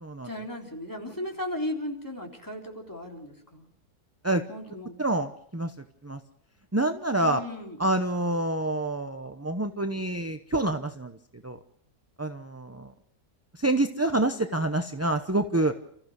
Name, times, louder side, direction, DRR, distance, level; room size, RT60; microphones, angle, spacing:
voice 1, 0.2-3.7 4.5-4.9 7.2-7.8, left 1 dB, 10° left, 0 dB, 3.6 m, -36 dB
voice 2, 5.0-5.7 6.0-6.2 6.7-7.4 7.8-11.2 11.4-11.6 12.2-12.9 13.5-15.7, right 2 dB, 15° right, 6 dB, 0.6 m, -27 dB
29.5 x 15.0 x 6.5 m, 0.69 s
omnidirectional pair, 1.6 m